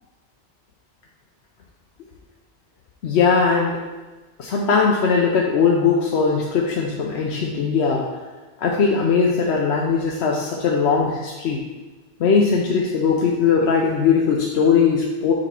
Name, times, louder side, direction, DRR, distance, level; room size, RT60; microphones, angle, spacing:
voice 1, 3.0-3.8 4.4-8.1 8.6-11.6 12.2-15.3, left 5 dB, 75° left, -1 dB, 0.9 m, -19 dB
5.4 x 5.1 x 4.3 m, 1.2 s
omnidirectional pair, 1.2 m